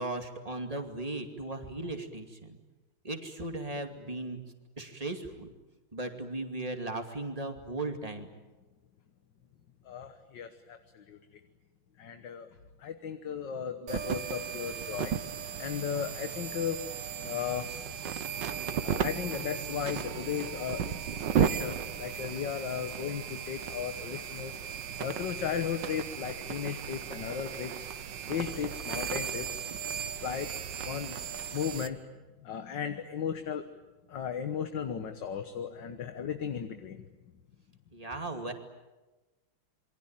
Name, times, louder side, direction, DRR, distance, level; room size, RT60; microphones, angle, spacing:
voice 1, 0.0-2.6 3.0-4.4 4.8-5.5 5.9-8.3 37.9-38.5, right 2 dB, 20° right, 5 dB, 2.4 m, -37 dB
voice 2, 9.9-11.2 12.0-12.5 12.8-15.1 15.6-16.8 17.2-17.7 18.8-24.6 25.0-27.9 28.3-29.6 30.2-31.2 31.5-32.0 32.4-33.7 34.1-37.0, left 8 dB, 65° left, 8 dB, 1.9 m, -36 dB
sound 1, 13.9-31.9, right 8 dB, 65° right, 1.7 m, -35 dB
27.5 x 23.5 x 8.9 m, 1.1 s
omnidirectional pair, 2.2 m